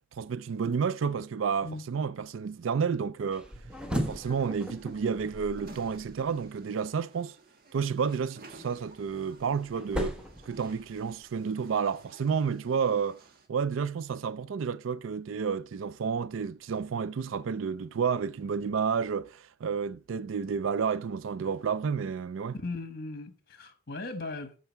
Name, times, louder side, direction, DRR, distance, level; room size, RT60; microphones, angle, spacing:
voice 1, 0.2-3.5 3.9-7.3 7.7-10.2 10.5-13.2 13.5-22.6, right 6 dB, 80° right, 0.4 m, -30 dB
sound 1, 3.3-6.5 8.7-11.2, equal, 5° right, 1.3 m, -37 dB
sound 2, 3.7-13.5, right 2 dB, 50° right, 1.6 m, -54 dB
voice 2, 22.5-24.5, left 3 dB, 55° left, 1.3 m, -38 dB
13.5 x 4.7 x 4.5 m
head